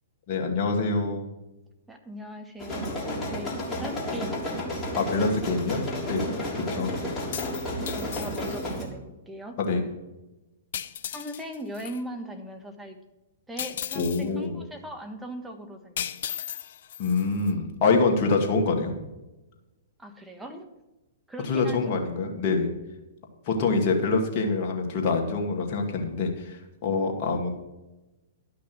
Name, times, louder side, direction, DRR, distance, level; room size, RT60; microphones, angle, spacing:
voice 1, 0.3-1.3 3.0-3.2 5.0-5.8 6.1-6.2 6.5-6.9 9.6-9.8 13.9-14.6 17.0-18.9 21.4-22.7 23.5-27.6, left 4 dB, 45° left, 2 dB, 2.3 m, -25 dB
voice 2, 1.9-2.9 3.3-4.7 7.9-9.5 11.1-13.0 13.5-16.0 20.0-20.6 21.3-21.8, equal, 5° right, 4 dB, 1.5 m, -39 dB
sound 1, 2.6-8.9, equal, 20° left, 3.4 m, -32 dB
sound 2, 7.2-8.8 10.7-12.0 13.6-14.3 16.0-17.5, left 10 dB, 60° left, 0.6 m, -36 dB
12.5 x 6.0 x 6.2 m, 1.0 s
hypercardioid pair, 115°, 0 cm